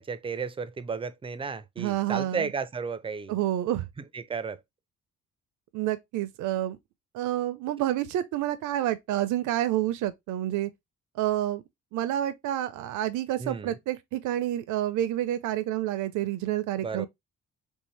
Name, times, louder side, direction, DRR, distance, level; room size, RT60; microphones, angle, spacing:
voice 1, 0.0-3.3 4.1-4.6 13.4-13.8 16.8-17.1, right 5 dB, 20° right, 0.3 m, -33 dB
voice 2, 1.8-2.5 3.3-3.9 5.7-6.8 7.1-10.7 11.2-11.6 11.9-17.1, right 13 dB, 80° right, 0.5 m, -29 dB
3.3 x 2.7 x 3.1 m
cardioid pair, 90°, 30 cm